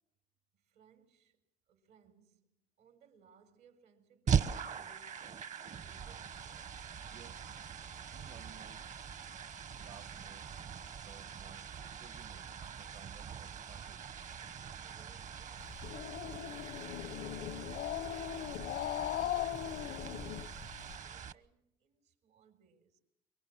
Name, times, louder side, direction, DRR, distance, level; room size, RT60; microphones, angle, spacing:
voice 1, 0.5-6.8 14.8-23.0, right 5 dB, 80° right, 4.1 m, -66 dB
sound 1, 4.3-21.3, right 7 dB, 45° right, 0.9 m, -41 dB
voice 2, 7.1-7.5 8.1-8.8 9.8-10.5 11.1-12.5 12.7-14.0, right 8 dB, 65° right, 1.4 m, -57 dB
Growling, 15.6-20.9, left 12 dB, 85° left, 0.8 m, -39 dB
24.0 x 23.0 x 7.4 m
cardioid pair, 110°, 17 cm